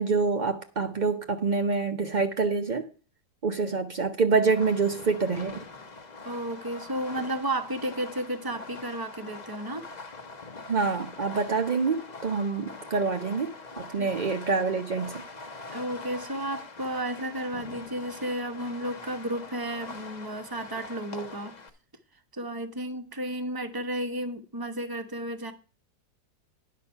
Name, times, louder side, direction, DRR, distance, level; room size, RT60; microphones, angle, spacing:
voice 1, 0.0-2.9 3.4-5.6 10.7-15.2, right 4 dB, 75° right, 0.4 m, -26 dB
Fireworks, 4.4-21.7, left 3 dB, 35° left, 0.8 m, -43 dB
voice 2, 6.2-9.8 14.0-14.1 15.7-21.5 22.3-25.5, right 1 dB, 20° right, 0.7 m, -33 dB
10.5 x 6.2 x 5.6 m
omnidirectional pair, 2.0 m